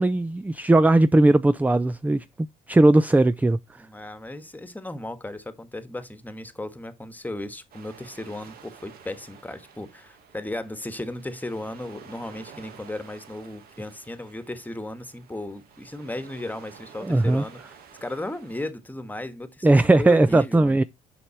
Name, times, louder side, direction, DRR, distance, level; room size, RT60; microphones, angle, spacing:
voice 1, 0.0-2.2 2.7-3.6 17.0-17.4 19.6-20.8, right 2 dB, 10° right, 0.5 m, -18 dB
voice 2, 3.8-20.8, left 1 dB, 10° left, 1.5 m, -35 dB
sound 1, 7.7-18.7, right 7 dB, 60° right, 1.7 m, -50 dB
7.0 x 5.4 x 4.4 m
hypercardioid pair, 55°, 18 cm